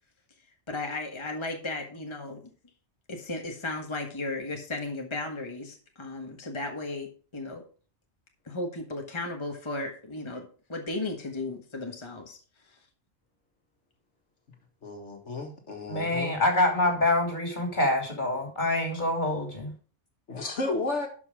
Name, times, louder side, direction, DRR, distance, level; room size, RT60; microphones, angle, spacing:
voice 1, 0.7-2.5 3.1-7.6 8.4-12.4, left 2 dB, 25° left, 2 dB, 1.5 m, -35 dB
voice 2, 14.8-16.4 20.3-21.1, left 2 dB, 80° left, 3 dB, 2.0 m, -33 dB
voice 3, 15.9-19.7, left 2 dB, 40° left, 2 dB, 3.1 m, -26 dB
12.0 x 5.7 x 4.8 m, 0.40 s
omnidirectional pair, 1.2 m